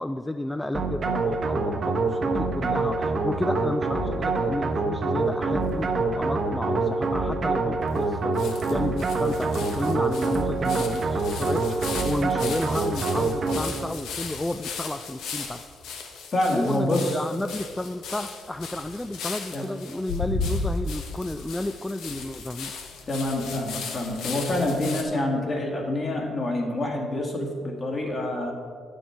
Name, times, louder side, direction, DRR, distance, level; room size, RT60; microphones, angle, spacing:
voice 1, 0.0-15.6 16.5-22.7, left 1 dB, 10° left, 8 dB, 0.3 m, -32 dB
sound 1, 0.7-13.9, right 3 dB, 45° right, 0.9 m, -26 dB
sound 2, 5.3-6.2 6.7-6.8 7.0-7.1 8.0-8.1 8.4-25.0, left 4 dB, 85° left, 0.9 m, -36 dB
voice 2, 16.3-17.2 19.5-19.7 23.1-28.5, left 1 dB, 40° left, 1 dB, 1.8 m, -27 dB
9.2 x 6.5 x 4.5 m, 2.1 s
cardioid pair, 90°, 0 cm